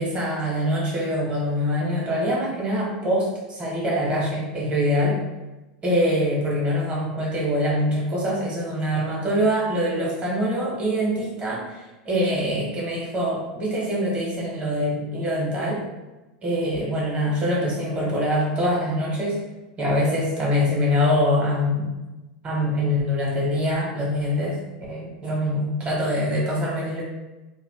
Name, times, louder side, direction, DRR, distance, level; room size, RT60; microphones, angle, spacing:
voice 1, 0.0-5.2 5.8-15.8 16.4-19.4 19.8-21.9 22.4-24.6 24.9-27.0, equal, 25° right, -4 dB, 1.1 m, -24 dB
2.4 x 2.3 x 3.5 m, 1.1 s
supercardioid pair, 120°, 5 cm